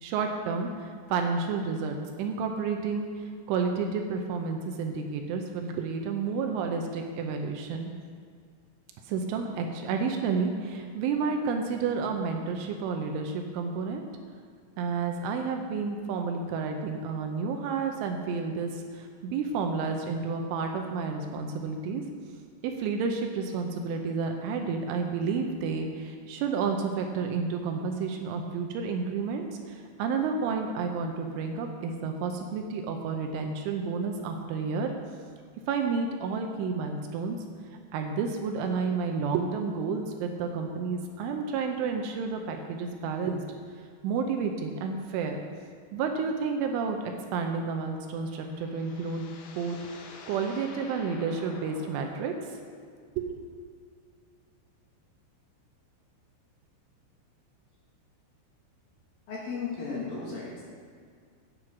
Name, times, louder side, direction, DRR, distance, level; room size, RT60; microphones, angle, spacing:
voice 1, 0.0-7.9 9.1-14.0 14.8-22.0 22.6-34.9 35.7-37.4 37.9-43.4 44.0-45.4 45.9-47.0 47.3-49.3 49.6-52.3 53.2-53.4, right 5 dB, 80° right, 3 dB, 3.1 m, -30 dB
sound 1, 48.1-53.1, left 4 dB, 85° left, 3.5 m, -48 dB
voice 2, 59.3-60.6, left 4 dB, 60° left, -5 dB, 2.8 m, -35 dB
9.2 x 8.2 x 5.9 m, 2.1 s
omnidirectional pair, 5.8 m